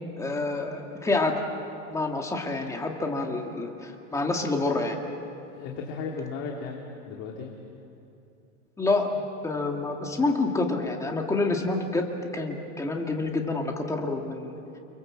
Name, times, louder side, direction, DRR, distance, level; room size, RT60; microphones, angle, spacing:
voice 1, 0.2-1.4 1.9-5.0 8.8-14.6, left 3 dB, 10° left, 2 dB, 2.1 m, -28 dB
voice 2, 5.5-7.5, left 4 dB, 40° left, 0 dB, 2.8 m, -35 dB
29.5 x 23.0 x 7.6 m, 2.8 s
supercardioid pair, 155°, 38 cm